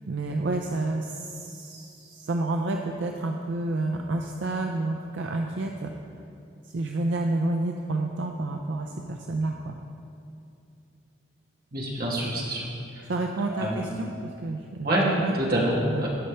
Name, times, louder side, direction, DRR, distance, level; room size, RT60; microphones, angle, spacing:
voice 1, 0.1-5.9 6.6-9.8 13.1-15.3 15.9-16.0, right 2 dB, 70° right, 3 dB, 0.5 m, -29 dB
voice 2, 11.7-12.7 12.9-13.1 13.5-13.9 14.8-15.0 15.3-16.1, right 1 dB, 50° right, -4 dB, 1.6 m, -26 dB
15.5 x 5.5 x 3.3 m, 2.6 s
head